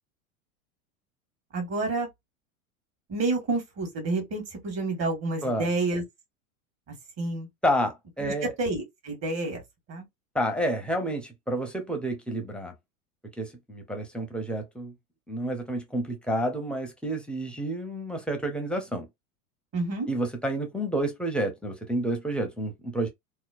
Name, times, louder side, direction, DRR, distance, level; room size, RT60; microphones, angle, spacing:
voice 1, 1.5-2.1 3.1-6.0 6.9-7.5 8.2-9.6 9.9-10.0 19.7-20.1, right 3 dB, 40° right, 1.6 m, -29 dB
voice 2, 7.6-8.5 10.3-12.7 13.4-14.9 15.3-19.1 20.1-23.1, right 1 dB, ahead, 0.7 m, -29 dB
2.9 x 2.0 x 2.4 m
hypercardioid pair, 100°, 42 cm